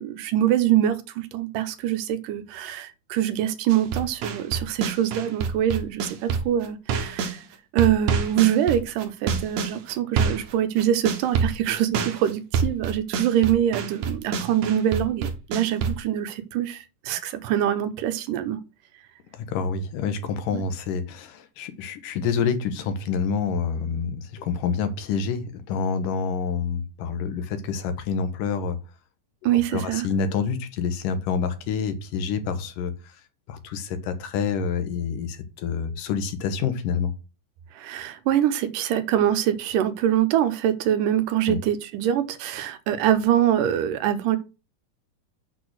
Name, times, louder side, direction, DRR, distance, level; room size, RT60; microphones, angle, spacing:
voice 1, 0.0-7.4 7.7-18.6 20.5-20.6 29.4-30.1 37.7-44.4, right 11 dB, 85° right, 2.5 m, -24 dB
sound 1, 3.7-7.4 7.8-16.0, right 6 dB, 70° right, 2.4 m, -26 dB
voice 2, 19.3-28.8 29.5-33.2 33.5-37.1 41.5-41.6, left 6 dB, 85° left, 2.8 m, -27 dB
6.7 x 6.4 x 6.2 m
omnidirectional pair, 3.7 m